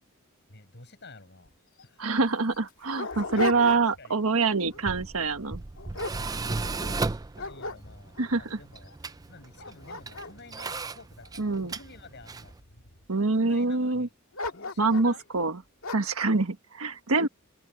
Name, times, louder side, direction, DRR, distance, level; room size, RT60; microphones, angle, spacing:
voice 1, 0.5-1.5 1.8-2.2 2.8-4.2 6.1-12.5 13.3-14.1 14.5-15.3, left 3 dB, 55° left, 7.3 m, -50 dB
Dog, 1.5-1.6 1.8-1.9 2.5-4.1 4.5-4.9 5.4-6.9 7.4-8.3 8.9-9.0 9.4-11.8 12.4-13.1 14.3-15.2 15.8-16.2, left 3 dB, 75° left, 2.0 m, -36 dB
voice 2, 2.0-5.6 8.2-8.6 11.4-11.7 13.1-14.1 14.8-15.6 15.9-17.3, right 3 dB, 75° right, 1.5 m, -25 dB
Tools, 4.6-12.6, right 3 dB, 15° right, 0.4 m, -36 dB
open air
head